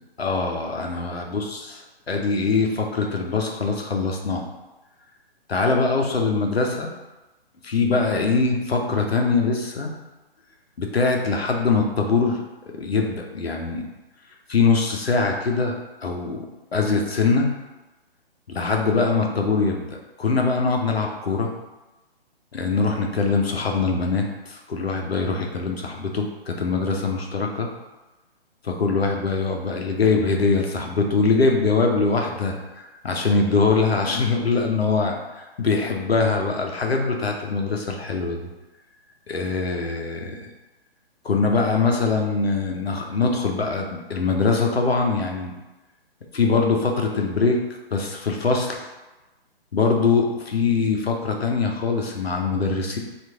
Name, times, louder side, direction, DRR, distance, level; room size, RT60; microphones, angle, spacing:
voice 1, 0.2-1.8 2.1-4.5 5.5-6.9 7.6-9.9 10.8-12.4 12.8-13.9 14.5-15.7 16.0-16.4 16.7-17.5 18.5-21.5 22.5-27.7 28.6-38.4 39.3-40.4 41.2-45.5 46.3-47.6 47.9-48.8 49.7-53.0, left 4 dB, 80° left, 2 dB, 0.7 m, -22 dB
3.0 x 2.5 x 3.4 m, 1.1 s
figure-of-eight pair, 130°, 30 cm